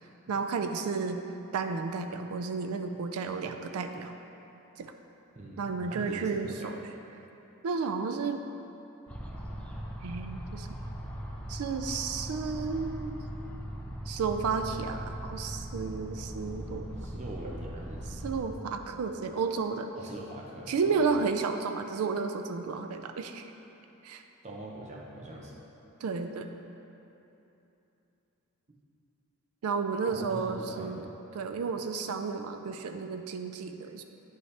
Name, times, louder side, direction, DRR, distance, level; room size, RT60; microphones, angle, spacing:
voice 1, 0.3-1.2 1.5-4.1 4.8-4.9 5.6-6.8 7.6-8.4 10.0-10.7 11.5-13.2 14.1-16.9 18.2-19.9 20.7-23.5 24.0-24.2 26.0-26.5 29.6-31.1 31.3-34.0, right 5 dB, 80° right, 7 dB, 0.4 m, -32 dB
voice 2, 5.3-6.7 16.8-18.2 19.9-21.1 24.4-25.6 30.1-31.0 31.7-31.8, right 1 dB, 30° right, -2 dB, 0.7 m, -43 dB
sound 1, 9.1-18.4, right 1 dB, 5° left, 0.6 m, -39 dB
9.3 x 5.5 x 3.2 m, 3.0 s
head